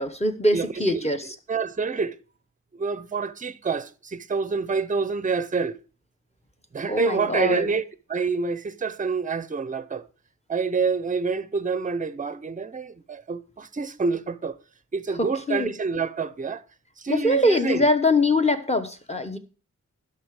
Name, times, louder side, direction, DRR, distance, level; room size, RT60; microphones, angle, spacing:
voice 1, 0.0-1.3 6.9-7.7 15.2-15.7 17.1-19.4, left 1 dB, 20° left, 0.9 m, -23 dB
voice 2, 0.5-1.1 1.5-2.2 2.7-5.8 6.7-7.8 8.1-10.0 10.5-14.6 14.9-16.6 17.0-17.9, right 4 dB, 25° right, 0.5 m, -27 dB
12.0 x 5.9 x 4.7 m
wide cardioid pair, 105°, 32 cm